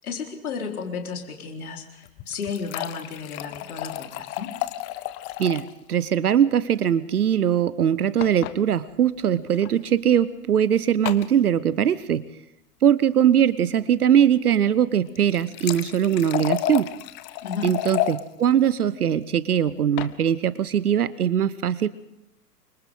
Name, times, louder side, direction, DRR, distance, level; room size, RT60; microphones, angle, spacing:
voice 1, 0.0-4.5 17.4-17.7, left 5 dB, 60° left, 2 dB, 4.5 m, -33 dB
sound 1, 2.0-5.8 6.1-6.2 6.4-6.5 8.2-8.6 9.5-9.7 11.1-11.3 15.1-18.2 19.7-20.1, left 14 dB, 25° left, 0.9 m, -31 dB
voice 2, 5.4-12.3 12.8-16.9 17.6-21.9, right 9 dB, 65° right, 17 dB, 1.1 m, -21 dB
29.0 x 25.0 x 3.9 m, 0.88 s
figure-of-eight pair, 110°, 49 cm